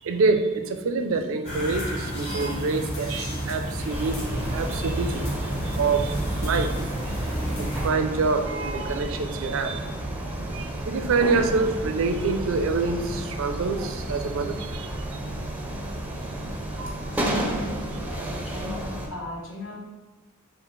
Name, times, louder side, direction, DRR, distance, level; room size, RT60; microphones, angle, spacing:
voice 1, 0.0-4.2 4.5-7.3 7.6-9.9 10.5-14.9 16.8-16.9, right 4 dB, 65° right, 6 dB, 0.4 m, -26 dB
sound 1, 1.4-7.9, equal, 30° left, 1.2 m, -30 dB
sound 2, 3.9-19.1, right 1 dB, 10° right, 0.4 m, -32 dB
voice 2, 17.1-19.8, left 2 dB, 70° left, -5 dB, 1.3 m, -38 dB
4.9 x 2.4 x 3.1 m, 1.2 s
head